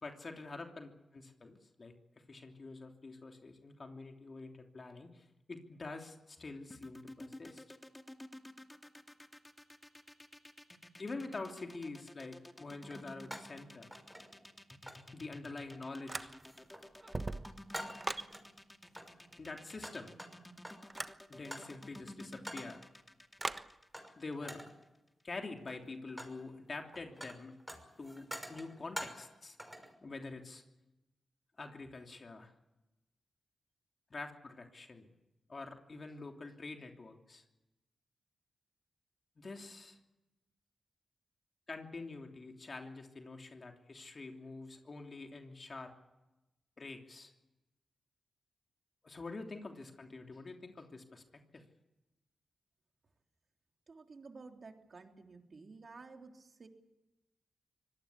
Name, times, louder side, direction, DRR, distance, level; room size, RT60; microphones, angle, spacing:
voice 1, 0.0-1.9 2.3-7.6 11.0-13.9 15.1-16.3 19.4-20.1 21.3-22.8 24.2-24.6 25.2-27.6 28.0-29.6 30.0-30.6 31.6-32.5 34.1-35.1 35.5-37.4 39.4-40.0 41.7-45.9 46.8-47.3 49.0-51.2 51.5-51.6, left 3 dB, 50° left, 3 dB, 3.1 m, -46 dB
sound 1, 6.7-24.8, left 1 dB, 15° left, 2.5 m, -53 dB
sound 2, 11.6-11.7 12.9-13.6 13.9-14.6 14.9-15.1 15.7-16.0 16.4-16.9 17.2-18.5 18.9-21.0 21.5-21.8 22.5-22.8 23.9-24.2 24.4-24.8 25.5-26.4 26.7-29.3 29.6-29.9, equal, ahead, 5.9 m, -47 dB
sound 3, 16.1-16.7 17.0-18.3 20.9-21.2 23.4-23.7, right 2 dB, 35° right, 1.2 m, -39 dB
voice 2, 53.9-56.7, right 4 dB, 55° right, 4 dB, 3.5 m, -53 dB
24.5 x 18.5 x 8.5 m, 0.99 s
cardioid pair, 50°, 0 cm